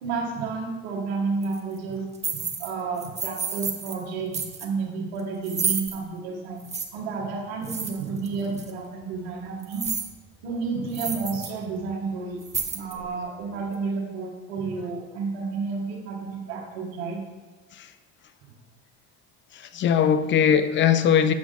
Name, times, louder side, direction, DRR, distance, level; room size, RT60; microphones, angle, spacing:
voice 1, 0.0-2.0 2.3-6.6 6.9-9.8 10.4-12.4 12.7-17.2, right 4 dB, 80° right, 1.5 m, -31 dB
sound 1, 1.4-1.6 2.1-2.7 3.0-4.0 4.3-4.7 5.4-6.0 6.6-6.8 7.6-8.3 8.6-8.7 9.6-10.1 10.5-10.6 10.9-11.5 11.8-11.9 12.4-13.1, right 6 dB, 20° right, 0.8 m, -30 dB
voice 2, 19.5-21.3, left 8 dB, 40° left, 0.5 m, -20 dB
7.1 x 4.9 x 3.8 m
supercardioid pair, 90°, 31 cm